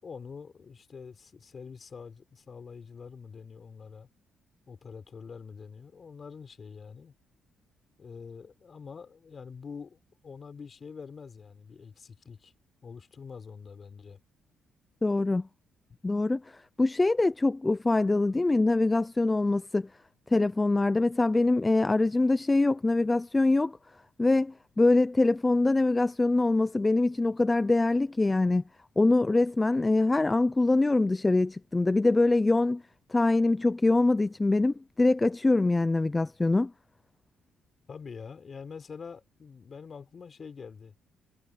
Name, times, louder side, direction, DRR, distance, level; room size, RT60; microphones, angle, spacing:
voice 1, 0.0-4.1 4.7-7.1 8.0-12.5 12.8-14.2 37.9-40.9, left 5 dB, 40° left, 4.3 m, -45 dB
voice 2, 15.0-15.5 16.0-19.9 20.3-23.8 24.2-28.6 29.0-32.8 33.1-36.7, left 2 dB, 20° left, 0.6 m, -24 dB
cardioid pair, 90°, 0 cm